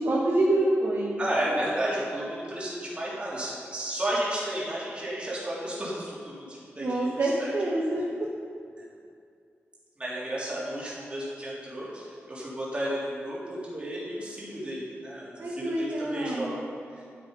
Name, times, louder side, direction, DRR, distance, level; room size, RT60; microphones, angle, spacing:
voice 1, 0.0-1.2 6.8-8.3 15.4-16.6, right 1 dB, 55° right, -4 dB, 1.3 m, -26 dB
voice 2, 1.2-7.5 8.8-8.9 10.0-16.6, right 1 dB, 25° right, -7 dB, 3.4 m, -33 dB
12.0 x 8.9 x 5.5 m, 2.3 s
wide cardioid pair, 165°, 5 cm